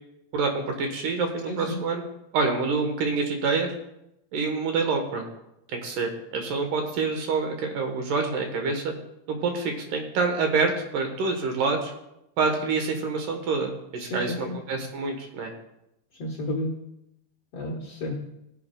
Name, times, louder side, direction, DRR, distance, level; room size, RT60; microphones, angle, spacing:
voice 1, 0.3-2.0 2.3-3.7 4.3-5.3 5.7-8.9 9.3-11.9 12.4-15.5, right 4 dB, 70° right, 4 dB, 2.6 m, -27 dB
voice 2, 1.5-1.8 14.0-14.6 16.2-16.8 17.5-18.1, left 1 dB, 70° left, 0 dB, 1.5 m, -31 dB
18.5 x 9.5 x 2.2 m, 0.86 s
omnidirectional pair, 4.3 m